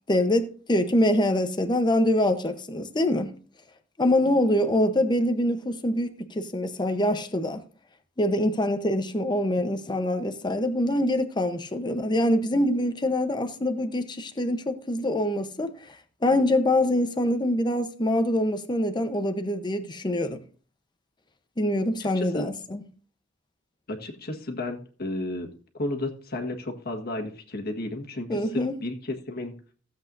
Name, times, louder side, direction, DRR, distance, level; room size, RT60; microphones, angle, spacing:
voice 1, 0.1-3.3 4.0-7.6 8.2-16.0 16.2-20.4 21.6-22.8 28.3-28.8, left 1 dB, 20° left, 0.9 m, -24 dB
voice 2, 22.0-22.5 23.9-25.5 25.8-29.5, left 2 dB, 50° left, 1.6 m, -33 dB
16.0 x 7.9 x 2.6 m
head